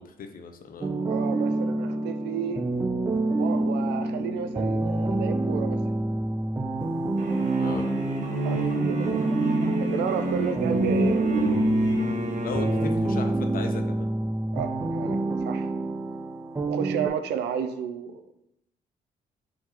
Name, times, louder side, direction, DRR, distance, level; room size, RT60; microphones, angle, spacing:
voice 1, 0.0-0.9 7.6-7.9 12.4-14.1, left 6 dB, 55° left, 6 dB, 0.6 m, -37 dB
sound 1, 0.8-17.1, right 2 dB, 15° right, 0.3 m, -27 dB
voice 2, 1.0-2.6 3.4-5.8 8.4-9.2 9.8-11.3 14.5-15.7 16.7-18.2, right 8 dB, 85° right, 9 dB, 0.4 m, -32 dB
sound 2, 7.2-13.0, right 1 dB, 50° right, 1.1 m, -29 dB
3.7 x 2.7 x 4.4 m, 0.83 s
supercardioid pair, 65°, 17 cm